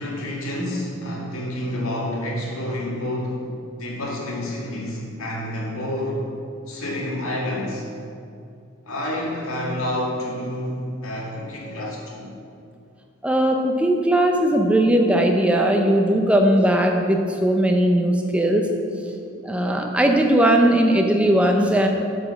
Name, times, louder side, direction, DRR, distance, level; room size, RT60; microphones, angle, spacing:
voice 1, 0.0-3.5 3.8-6.2 6.7-7.8 8.9-12.3, left 1 dB, 75° left, -3 dB, 1.9 m, -28 dB
voice 2, 13.2-18.7 19.4-21.9, right 1 dB, 5° right, 2 dB, 0.5 m, -18 dB
8.5 x 5.0 x 6.3 m, 2.5 s
head